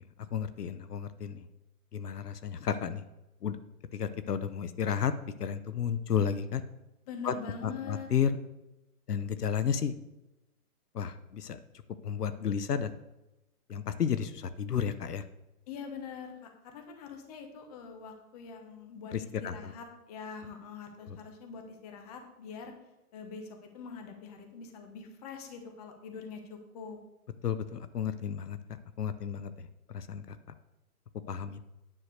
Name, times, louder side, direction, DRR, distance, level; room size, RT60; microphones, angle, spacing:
voice 1, 0.2-1.5 1.9-3.0 3.4-3.6 3.9-5.1 5.4-6.6 7.2-7.3 7.6-8.3 9.1-9.9 10.9-11.6 12.0-12.9 13.7-15.2 19.1-19.7 27.4-30.4 31.3-31.6, left 8 dB, 90° left, 12 dB, 0.9 m, -32 dB
voice 2, 7.1-8.1 15.7-19.1 19.4-22.7 23.1-23.5 23.7-27.0, left 5 dB, 25° left, 4 dB, 1.2 m, -44 dB
10.0 x 4.6 x 6.5 m, 0.95 s
hypercardioid pair, 150°, 45 cm